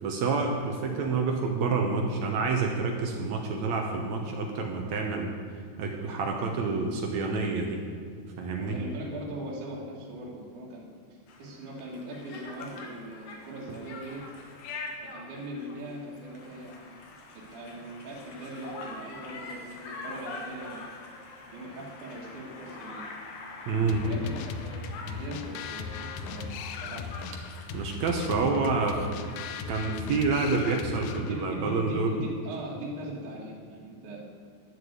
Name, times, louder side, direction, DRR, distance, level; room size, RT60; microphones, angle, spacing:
voice 1, 0.0-5.3 5.8-7.8 8.4-8.8 23.7-24.0 27.7-29.1 29.7-32.1, right 4 dB, 75° right, 2 dB, 1.7 m, -28 dB
voice 2, 0.9-1.3 8.6-14.2 15.0-17.0 17.3-20.9 21.5-23.1 24.0-27.3 31.2-34.2, right 1 dB, 55° right, -4 dB, 2.9 m, -40 dB
Conversation, 11.3-30.8, left 3 dB, 65° left, 2.8 m, -45 dB
sound 1, 23.9-31.5, left 6 dB, 80° left, 2.0 m, -38 dB
11.5 x 7.4 x 8.0 m, 2.3 s
omnidirectional pair, 4.7 m